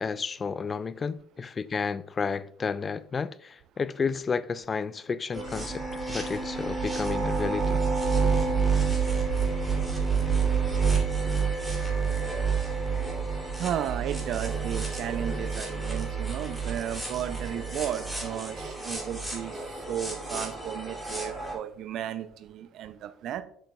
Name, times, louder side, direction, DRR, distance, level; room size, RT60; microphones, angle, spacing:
voice 1, 0.0-5.8 6.1-7.8, left 5 dB, 30° left, 0.3 m, -31 dB
sound 1, 5.3-21.6, right 5 dB, 5° right, 2.8 m, -29 dB
voice 2, 13.6-23.4, right 10 dB, 55° right, 0.5 m, -34 dB
7.6 x 6.7 x 2.3 m
figure-of-eight pair, 60°, 0 cm